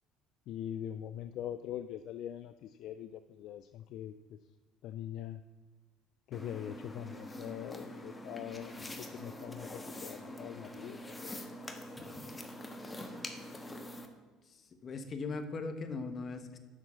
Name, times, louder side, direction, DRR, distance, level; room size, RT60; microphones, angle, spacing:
voice 1, 0.5-4.4 4.8-5.4 6.3-11.3, left 10 dB, 65° left, 11 dB, 0.3 m, -43 dB
sound 1, 6.3-14.1, left 1 dB, 15° left, 1.2 m, -45 dB
voice 2, 14.4-16.6, left 3 dB, 40° left, 8 dB, 1.2 m, -39 dB
7.4 x 6.0 x 7.3 m, 1.4 s
hypercardioid pair, 70°, 0 cm